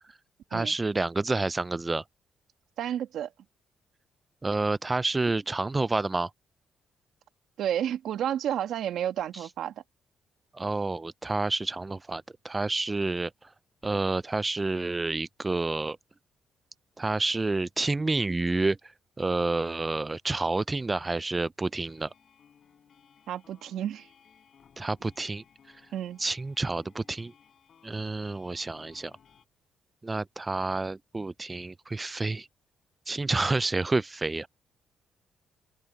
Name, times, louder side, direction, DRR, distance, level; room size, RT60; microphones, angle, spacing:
voice 1, 0.5-2.0 4.4-6.3 10.5-13.3 13.8-16.0 17.0-18.8 19.2-22.1 24.8-25.4 26.2-27.3 27.8-29.1 30.0-32.5 33.1-34.5, right 3 dB, 20° right, 0.4 m, -29 dB
voice 2, 2.8-3.3 7.6-9.7 23.3-24.1 25.9-26.2, right 10 dB, 75° right, 1.9 m, -31 dB
sound 1, 21.7-29.4, left 7 dB, 55° left, 6.2 m, -60 dB
cardioid pair, 90°, 0 cm